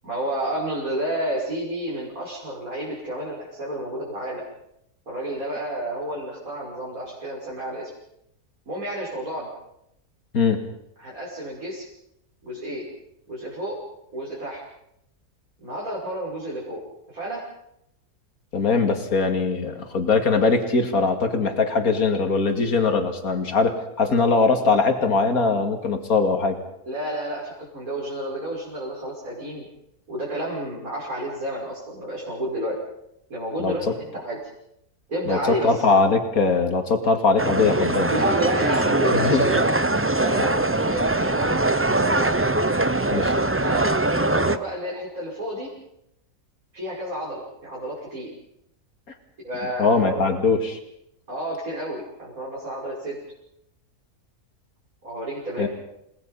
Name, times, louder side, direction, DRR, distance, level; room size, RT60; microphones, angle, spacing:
voice 1, 0.0-4.4 5.1-7.9 8.7-9.5 11.0-11.8 12.4-12.8 13.3-13.8 14.1-14.6 15.6-16.8 17.1-17.4 26.9-29.6 30.1-32.8 33.3-34.4 35.1-35.8 38.0-39.7 40.1-42.4 43.1-45.7 46.7-48.3 49.4-50.4 51.3-53.2 55.0-55.7, right 1 dB, 65° right, -6 dB, 6.4 m, -30 dB
voice 2, 18.5-26.6 33.6-34.0 35.3-38.1 39.1-39.4 43.1-43.3 49.8-50.8 55.6-55.7, left 4 dB, 70° left, 6 dB, 2.8 m, -21 dB
sound 1, 37.4-44.6, right 2 dB, 15° right, 0.4 m, -22 dB
29.5 x 19.5 x 5.6 m, 0.78 s
omnidirectional pair, 1.6 m